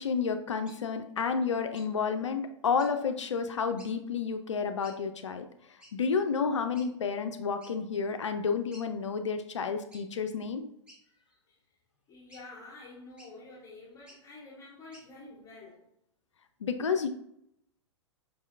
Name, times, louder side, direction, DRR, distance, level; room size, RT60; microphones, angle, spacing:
voice 1, 0.0-5.4 5.9-10.6 16.6-17.1, left 5 dB, 75° left, 7 dB, 0.4 m, -30 dB
sound 1, 0.6-0.8 1.7-1.9 2.8-2.9 3.8-3.9 4.8-5.0 5.8-5.9 6.7-6.9 7.6-7.8 8.2-8.3 8.7-8.9 9.9-10.1 10.9-11.4 12.3-12.4 13.2-13.3 14.0-14.2 14.9-15.1, equal, 5° right, 1.0 m, -54 dB
voice 2, 11.0-11.6 12.1-15.9, left 2 dB, 20° left, -6 dB, 1.1 m, -49 dB
5.2 x 2.7 x 2.4 m, 0.74 s
figure-of-eight pair, 105°, 15 cm